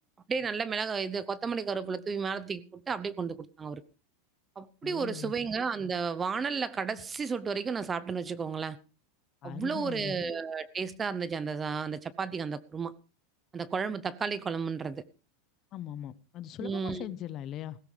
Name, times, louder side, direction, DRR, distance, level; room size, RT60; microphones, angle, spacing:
voice 1, 0.3-3.8 4.6-8.8 9.4-12.9 13.5-15.0 16.6-17.1, right 5 dB, 20° right, 0.8 m, -33 dB
voice 2, 4.8-5.3 9.4-10.2 15.7-17.8, left 11 dB, 40° left, 0.9 m, -40 dB
17.0 x 15.0 x 3.4 m
supercardioid pair, 130°, 0 cm